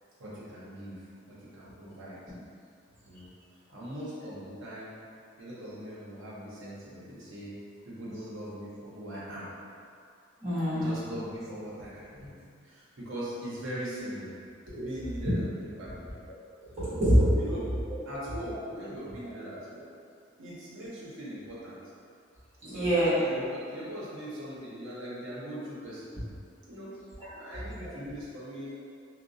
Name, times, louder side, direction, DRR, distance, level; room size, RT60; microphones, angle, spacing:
voice 1, 0.2-1.0 1.3-2.2 3.1-3.3 3.7-5.0 5.4-7.6 7.8-9.5 10.7-14.4 14.7-16.1 17.3-17.7 18.1-19.9 20.4-21.8 22.6-26.1 26.7-26.9 27.3-28.7, equal, 80° right, -8 dB, 0.8 m, -40 dB
voice 2, 10.4-11.0 14.7-14.8 16.6-17.3 22.7-23.2, equal, 35° right, -14 dB, 1.2 m, -25 dB
2.8 x 2.1 x 2.6 m, 2.4 s
head